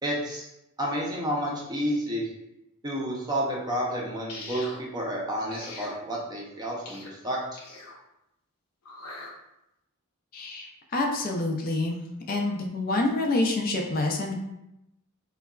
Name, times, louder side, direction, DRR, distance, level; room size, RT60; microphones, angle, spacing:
voice 1, 0.0-0.5 0.8-2.2 2.8-4.6 4.9-7.6, equal, 20° right, -3 dB, 0.5 m, -30 dB
sound 1, 4.3-4.8 5.5-6.0 6.8-7.1 7.5-8.0 8.8-9.3, left 2 dB, 85° left, 0.7 m, -42 dB
voice 2, 10.3-12.0 12.3-14.4, left 2 dB, 40° left, 1 dB, 0.3 m, -27 dB
3.8 x 2.2 x 2.3 m, 0.87 s
head